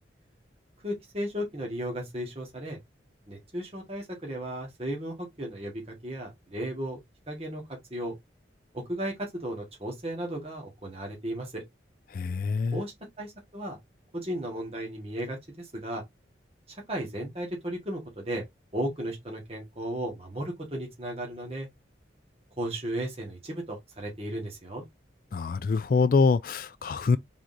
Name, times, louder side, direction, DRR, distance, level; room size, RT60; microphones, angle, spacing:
voice 1, 0.8-2.8 3.3-7.6 7.9-8.1 8.7-11.6 12.7-13.8 14.1-16.0 16.7-18.4 18.7-21.7 22.6-24.8, right 1 dB, 30° right, 1.5 m, -35 dB
voice 2, 12.1-12.8 25.3-27.2, left 4 dB, 50° left, 0.3 m, -25 dB
4.5 x 3.7 x 2.6 m
head